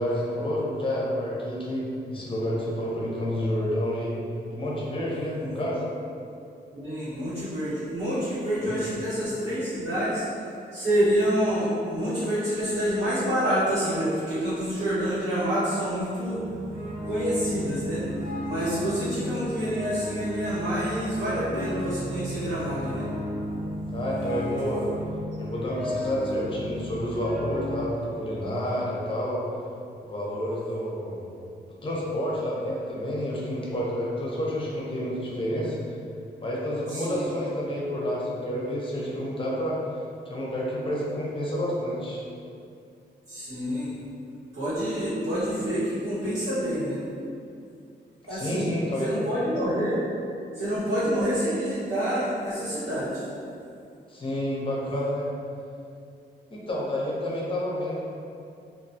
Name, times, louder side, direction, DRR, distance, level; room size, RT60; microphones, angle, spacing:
voice 1, 0.0-4.1 4.5-5.8 8.6-8.8 23.9-24.9 25.4-29.4 30.0-31.3 31.8-35.8 36.4-39.8 40.3-42.2 48.2-49.1 54.1-55.3 56.5-58.0, equal, 30° left, -5 dB, 0.7 m, -29 dB
voice 2, 5.3-5.6 6.7-10.2 10.7-16.4 17.0-18.0 18.4-23.0 36.9-37.3 43.3-43.9 44.5-47.0 48.3-48.7 49.0-50.0 50.5-53.2, equal, 85° right, -18 dB, 1.3 m, -27 dB
sound 1, 16.2-27.9, equal, 50° right, 0.6 m, -34 dB
2.4 x 2.2 x 2.6 m, 2.5 s
cardioid pair, 80°, 18 cm